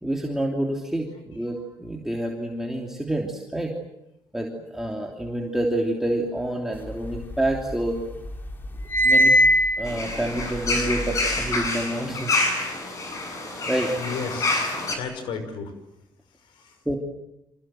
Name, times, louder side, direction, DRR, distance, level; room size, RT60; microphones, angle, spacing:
voice 1, 0.0-3.7 4.3-8.0 9.0-9.3 9.8-12.3 13.7-13.9 16.9-17.0, right 1 dB, 5° right, 0 dB, 3.0 m, -28 dB
sound 1, 6.9-7.9 8.3-11.7, equal, 25° left, 3.2 m, -22 dB
Birds Outdoors, 9.8-14.9, left 2 dB, 40° left, 7.7 m, -27 dB
voice 2, 14.0-15.7 16.4-16.8, left 5 dB, 80° left, 9 dB, 5.8 m, -34 dB
29.5 x 26.0 x 7.7 m, 0.87 s
cardioid pair, 135°, 8 cm